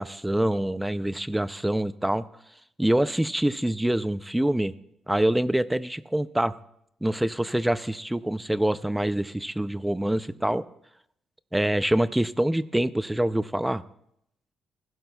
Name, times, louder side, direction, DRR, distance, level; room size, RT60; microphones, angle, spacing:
voice 1, 0.0-2.3 2.8-4.7 5.1-6.5 7.0-10.6 11.5-13.8, right 1 dB, 5° right, 14 dB, 0.4 m, -25 dB
20.0 x 15.5 x 2.3 m, 0.76 s
cardioid pair, 130°, 0 cm